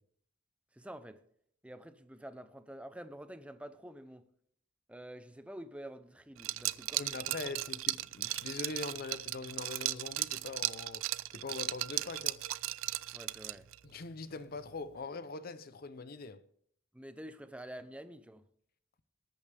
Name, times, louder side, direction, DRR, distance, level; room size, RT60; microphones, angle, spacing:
voice 1, 0.7-1.2 1.6-4.3 4.9-7.2 13.1-13.7 16.9-18.4, right 1 dB, 5° right, 0.7 m, -48 dB
Liquid, 6.4-13.8, right 16 dB, 90° right, 0.4 m, -36 dB
voice 2, 7.0-12.4 13.8-16.4, left 3 dB, 45° left, 0.6 m, -42 dB
19.5 x 8.7 x 3.4 m
head